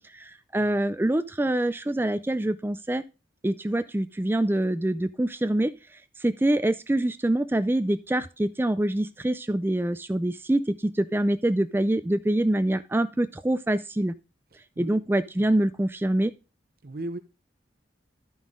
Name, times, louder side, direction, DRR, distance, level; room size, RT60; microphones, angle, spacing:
voice 1, 0.0-3.0 3.4-5.7 6.2-14.1 14.8-16.4, right 1 dB, 10° right, 0.3 m, -25 dB
voice 2, 16.8-17.2, right 1 dB, 50° right, 0.8 m, -36 dB
12.0 x 5.5 x 3.6 m
head